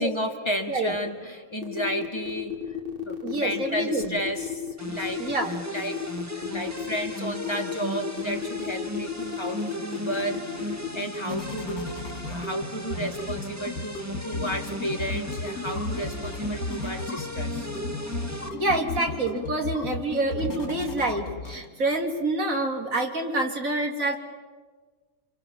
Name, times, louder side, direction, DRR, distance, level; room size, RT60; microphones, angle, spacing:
voice 1, 0.0-2.6 3.0-5.2 5.7-6.0 6.3-17.7, equal, 20° left, 2 dB, 2.5 m, -33 dB
sound 1, 1.6-11.0, left 8 dB, 40° right, 3.0 m, -33 dB
voice 2, 3.2-4.2 5.2-5.5 18.6-24.2, right 2 dB, 70° right, 3 dB, 3.3 m, -27 dB
sound 2, 4.8-18.5, right 1 dB, 10° right, 1.6 m, -36 dB
sound 3, 9.2-22.0, left 3 dB, 80° left, 2.8 m, -35 dB
29.0 x 26.0 x 7.3 m, 1.4 s
omnidirectional pair, 1.5 m